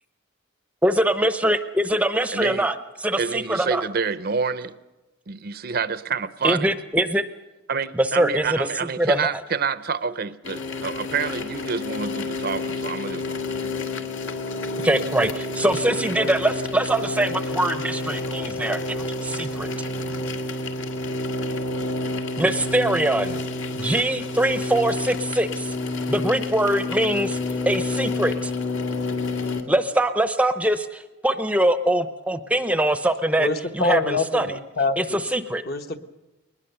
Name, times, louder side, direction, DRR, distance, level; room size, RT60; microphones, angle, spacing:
voice 1, 0.8-2.7 3.0-3.8 6.4-7.2 7.9-8.7 9.0-9.3 14.8-19.7 22.4-23.4 23.7-25.7 26.1-27.4 27.7-28.5 29.7-33.5 33.7-34.5 35.0-35.6, right 1 dB, 5° right, 10 dB, 0.7 m, -23 dB
voice 2, 2.3-2.7 3.2-4.7 5.3-6.7 7.7-13.7, right 5 dB, 45° right, 14 dB, 0.6 m, -28 dB
sound 1, 10.4-29.6, left 2 dB, 65° left, 2.0 m, -29 dB
voice 3, 33.4-35.2 35.7-36.0, left 3 dB, 45° left, 6 dB, 1.1 m, -25 dB
21.5 x 20.0 x 6.8 m, 1.1 s
head